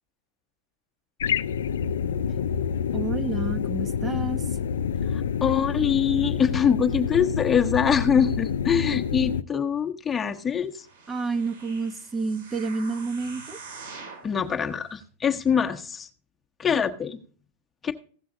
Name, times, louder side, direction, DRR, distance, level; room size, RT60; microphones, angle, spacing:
sound 1, 1.2-9.4, left 7 dB, 90° left, 0.4 m, -27 dB
voice 1, 2.9-4.6 11.1-13.6, right 4 dB, 20° right, 9 dB, 1.0 m, -29 dB
voice 2, 5.1-10.9 14.2-16.1 16.6-17.2 17.8-17.9, left 7 dB, 20° left, 4 dB, 1.0 m, -24 dB
sound 2, 10.8-14.3 14.9-15.0, right 4 dB, 70° right, 6.0 m, -44 dB
16.0 x 6.1 x 3.8 m, 0.43 s
hypercardioid pair, 120°, 0 cm